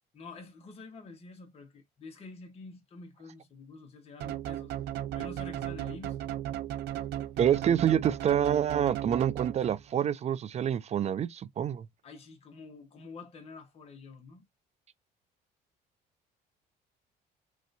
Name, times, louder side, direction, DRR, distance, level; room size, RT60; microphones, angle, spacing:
voice 1, 0.1-4.7 5.1-6.2 7.4-7.6 12.0-14.4, left 3 dB, 35° left, 1.1 m, -48 dB
sound 1, 4.2-10.0, right 12 dB, 80° right, 0.6 m, -36 dB
voice 2, 7.4-11.9, right 9 dB, 40° right, 0.4 m, -27 dB
3.1 x 2.7 x 2.6 m
cardioid pair, 110°, 17 cm